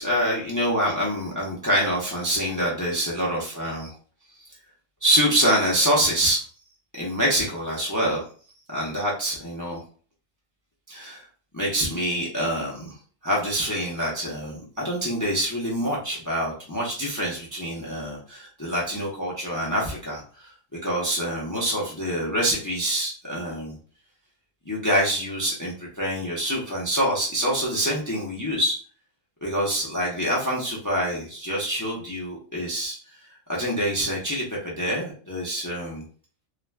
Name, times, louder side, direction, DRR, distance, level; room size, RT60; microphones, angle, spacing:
voice 1, 0.0-3.9 5.0-6.4 7.0-8.2 8.7-9.8 10.9-11.2 11.5-13.0 13.2-23.8 24.7-28.8 29.4-33.2 33.5-36.0, equal, 30° left, -3 dB, 0.3 m, -26 dB
2.4 x 2.1 x 3.2 m, 0.41 s
omnidirectional pair, 1.4 m